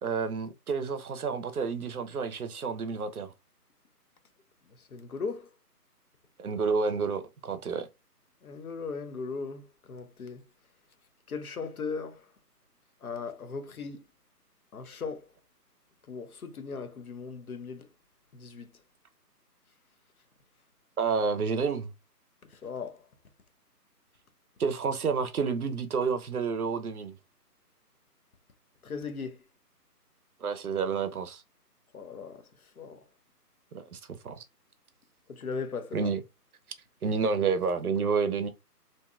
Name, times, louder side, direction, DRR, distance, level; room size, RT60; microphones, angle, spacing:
voice 1, 0.0-3.3 6.4-7.9 21.0-21.9 24.6-27.1 30.4-31.4 33.7-34.4 35.9-36.2 37.0-38.5, right 5 dB, 65° right, 0.6 m, -29 dB
voice 2, 4.9-5.5 8.4-10.4 11.3-12.2 13.0-14.0 14.7-15.3 16.1-17.9 18.3-18.7 22.5-23.0 28.8-29.4 31.9-32.5 32.8-33.0 35.3-36.1, left 5 dB, 60° left, 0.6 m, -38 dB
2.6 x 2.4 x 2.3 m
figure-of-eight pair, 155°, 49 cm